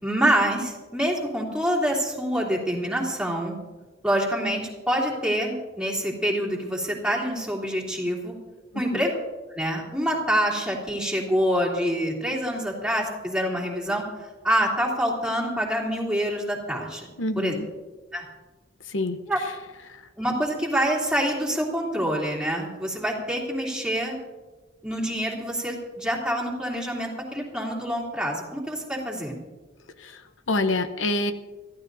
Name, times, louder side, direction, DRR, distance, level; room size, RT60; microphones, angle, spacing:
voice 1, 0.0-3.6 4.0-8.3 8.7-9.1 9.5-14.0 14.4-17.1 17.4-17.5 18.1-18.2 19.3-19.4 20.2-24.2 24.8-29.4, equal, 5° right, -3 dB, 3.0 m, -26 dB
voice 2, 17.2-17.7 18.9-19.2 30.0-30.2 30.5-31.3, left 2 dB, 90° left, 9 dB, 0.9 m, -26 dB
25.0 x 14.5 x 2.7 m, 1.3 s
head